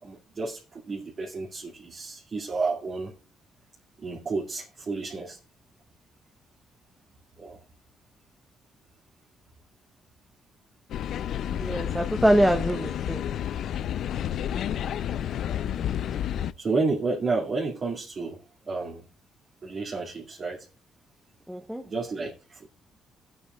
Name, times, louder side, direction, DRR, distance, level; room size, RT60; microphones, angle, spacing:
voice 1, 0.0-3.1 4.0-5.4 7.4-7.6 16.6-18.4 18.7-19.0 19.6-20.6 21.8-22.7, right 3 dB, 45° right, 2.2 m, -31 dB
sound 1, 10.9-16.5, left 10 dB, 70° left, 0.4 m, -30 dB
voice 2, 11.6-13.3 21.5-21.8, equal, 5° right, 0.8 m, -24 dB
17.5 x 8.6 x 2.3 m
cardioid pair, 90°, 0 cm